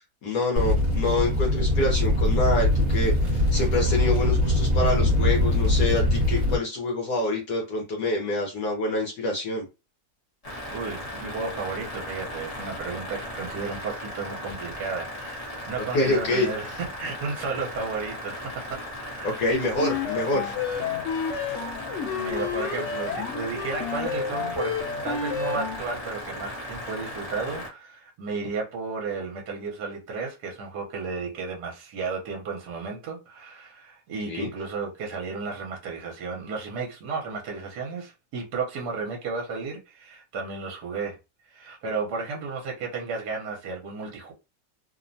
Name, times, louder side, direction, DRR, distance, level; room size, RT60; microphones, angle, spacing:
voice 1, 0.0-9.6 15.9-16.8 19.2-20.5 34.3-34.5, left 2 dB, 70° left, 1.2 m, -26 dB
sound 1, 0.6-6.6, left 1 dB, 35° right, 1.1 m, -22 dB
sound 2, 10.4-27.7, left 1 dB, 35° left, 0.6 m, -37 dB
voice 2, 10.7-16.7 17.0-19.4 21.5-21.7 22.1-41.2 41.5-44.3, right 4 dB, 70° right, 1.3 m, -33 dB
sound 3, 19.8-25.9, left 6 dB, 90° left, 0.6 m, -30 dB
3.1 x 2.1 x 2.5 m
omnidirectional pair, 1.9 m